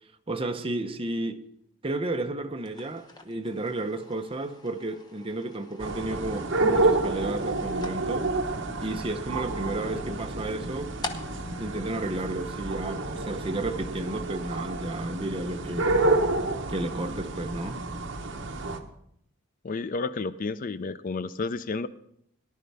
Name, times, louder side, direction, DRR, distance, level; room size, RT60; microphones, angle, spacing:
voice 1, 0.3-1.4 1.8-8.3 8.8-10.9 11.6-15.9 16.7-17.8, right 2 dB, 25° right, 0.7 m, -32 dB
sound 1, 2.5-12.9, left 3 dB, 20° left, 1.0 m, -46 dB
sound 2, 5.8-18.8, right 2 dB, 60° right, 1.1 m, -29 dB
voice 2, 19.6-21.9, left 3 dB, 40° left, 0.4 m, -31 dB
18.5 x 11.0 x 3.4 m
head